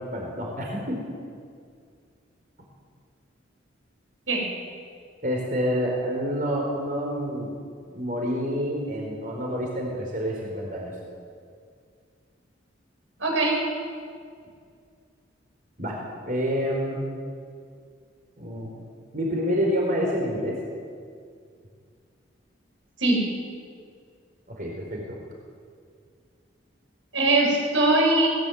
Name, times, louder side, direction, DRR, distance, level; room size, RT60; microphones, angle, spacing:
voice 1, 0.1-1.0 5.2-7.5 7.9-10.9 15.8-16.0 16.2-17.0 18.4-18.7 19.1-20.6 24.6-25.2, equal, 45° right, -1 dB, 4.4 m, -28 dB
voice 2, 13.2-13.6 23.0-23.2 27.1-28.3, right 2 dB, 80° right, 0 dB, 7.3 m, -21 dB
22.0 x 18.0 x 9.4 m, 2.2 s
head